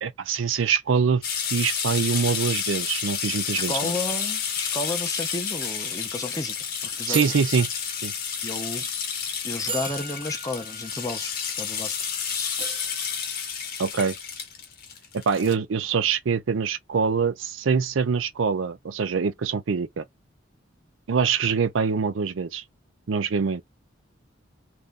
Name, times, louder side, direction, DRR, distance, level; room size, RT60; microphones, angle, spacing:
voice 1, 0.0-1.2 1.5-3.9 7.1-7.7 8.0-8.1 13.8-14.2 15.1-20.1 21.1-22.6 23.1-23.6, right 6 dB, 80° right, 0.5 m, -24 dB
sound 1, 1.2-15.5, left 7 dB, 45° left, 0.9 m, -30 dB
voice 2, 3.5-6.5 6.8-7.2 8.4-8.9 9.4-12.0 12.3-12.5, left 2 dB, 20° left, 0.6 m, -32 dB
sound 2, 6.4-6.5 7.1-8.5 9.2-9.3 9.7-12.1 12.6-14.2, right 4 dB, 25° right, 0.7 m, -38 dB
2.7 x 2.3 x 3.5 m
head